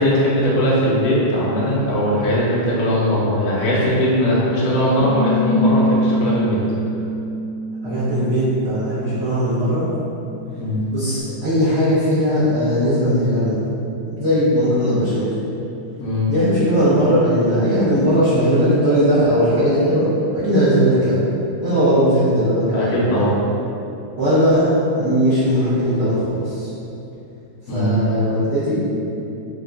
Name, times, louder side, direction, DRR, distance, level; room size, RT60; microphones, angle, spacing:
voice 1, 0.0-6.6 10.6-10.8 16.0-16.3 22.7-23.4 27.7-28.0, equal, 60° left, -7 dB, 0.9 m, -19 dB
Bass guitar, 5.0-11.2, left 1 dB, 80° left, 1.5 m, -25 dB
voice 2, 7.8-9.9 10.9-13.6 14.0-15.3 16.3-20.1 20.3-21.2 21.6-23.2 24.2-26.7 27.7-28.8, equal, 70° right, -14 dB, 0.6 m, -18 dB
3.6 x 2.2 x 3.8 m, 2.9 s
omnidirectional pair, 2.4 m